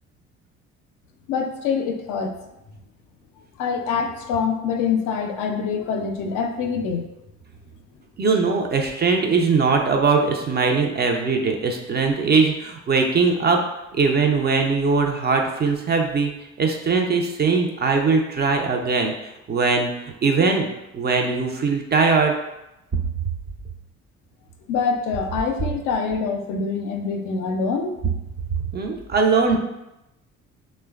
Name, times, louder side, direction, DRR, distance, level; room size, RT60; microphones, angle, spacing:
voice 1, 1.3-2.3 3.6-7.1 24.7-28.0, left 5 dB, 65° left, 4 dB, 0.5 m, -25 dB
voice 2, 8.2-13.6 13.9-16.3 16.6-19.1 19.5-19.9 20.2-20.7 20.9-22.3 28.7-29.6, right 4 dB, 30° right, 3 dB, 0.4 m, -20 dB
3.0 x 2.1 x 2.3 m, 0.92 s
hypercardioid pair, 55°, 33 cm